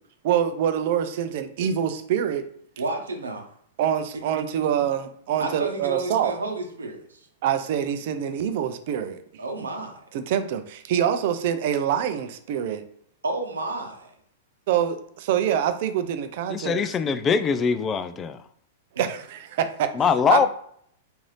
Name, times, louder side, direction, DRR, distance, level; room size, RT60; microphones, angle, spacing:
voice 1, 0.2-2.4 3.8-6.3 7.4-9.2 10.1-12.8 14.7-16.8 19.0-19.9 20.3-20.5, right 9 dB, 55° right, 0.4 m, -25 dB
voice 2, 2.8-3.4 5.4-7.3 9.4-10.0 13.2-14.1, right 2 dB, 85° right, 0.8 m, -31 dB
voice 3, 16.5-18.4 20.0-20.5, left 6 dB, 25° left, 0.3 m, -22 dB
3.8 x 2.6 x 3.2 m
hypercardioid pair, 105°, 0 cm